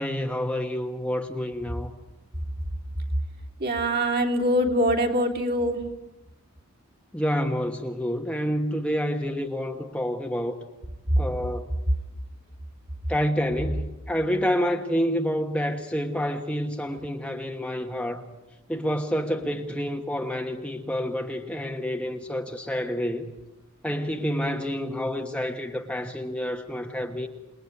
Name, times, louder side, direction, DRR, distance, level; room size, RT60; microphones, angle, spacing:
voice 1, 0.0-1.9 7.1-10.6 11.2-11.7 13.1-18.2 18.7-23.3 23.8-27.3, equal, 5° left, 1.2 m, -28 dB
voice 2, 3.6-5.8 16.9-17.0, equal, 45° right, 3.4 m, -24 dB
28.5 x 20.5 x 9.7 m
head